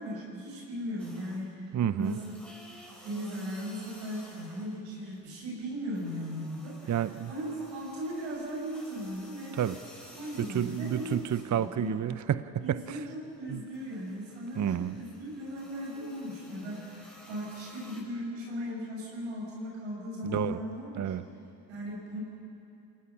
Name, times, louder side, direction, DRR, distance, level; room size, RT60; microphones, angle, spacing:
voice 1, 0.0-2.1 3.0-6.9 7.3-9.6 10.1-11.2 11.5-12.0 12.6-21.1 21.7-22.2, equal, 75° right, -3 dB, 7.4 m, -37 dB
sound 1, 1.0-1.6 2.0-4.9 5.2-11.9 12.3-18.0, equal, ahead, 7.1 m, -54 dB
voice 2, 1.7-2.2 6.9-7.3 9.5-9.8 10.4-13.0 13.5-13.6 14.6-15.0 20.2-20.6 20.9-21.3, right 10 dB, 40° right, 14 dB, 0.8 m, -30 dB
28.5 x 17.5 x 6.1 m, 2.8 s
hypercardioid pair, 50°, 45 cm